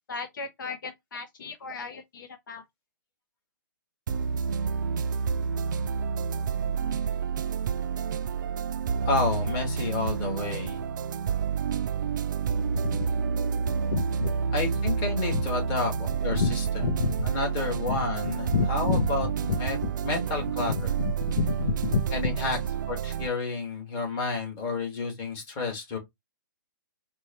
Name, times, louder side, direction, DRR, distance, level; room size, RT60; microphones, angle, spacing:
voice 1, 0.1-2.6 13.9-14.3 15.3-15.4 16.3-16.5 16.8-17.2 17.9-18.0 18.5-19.1 19.5-19.6 19.8-19.9 20.7-22.0, left 5 dB, 65° left, 0.7 m, -29 dB
sound 1, 4.1-23.3, right 6 dB, 60° right, 0.4 m, -29 dB
voice 2, 9.1-10.8 14.5-16.8 17.2-19.3 19.6-19.8 20.0-20.9 22.1-22.6 22.9-26.0, left 3 dB, 25° left, 1.8 m, -30 dB
4.4 x 2.3 x 2.9 m
hypercardioid pair, 160°, 12 cm